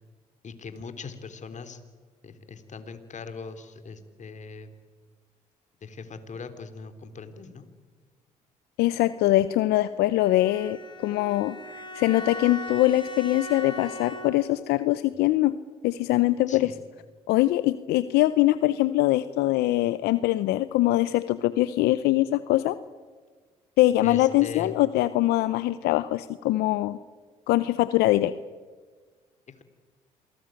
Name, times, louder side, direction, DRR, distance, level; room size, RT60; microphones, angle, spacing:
voice 1, 0.4-1.8 2.2-4.7 5.8-7.7 16.5-16.8 24.0-24.7 29.5-29.6, left 5 dB, 45° left, 9 dB, 3.3 m, -40 dB
voice 2, 8.8-15.5 15.8-16.7 17.3-22.8 23.8-27.0 27.5-28.3, left 16 dB, 80° left, 14 dB, 0.7 m, -23 dB
Bowed string instrument, 10.2-14.6, left 1 dB, 30° left, 5.0 m, -39 dB
27.0 x 19.5 x 9.1 m, 1.5 s
supercardioid pair, 60°, 17 cm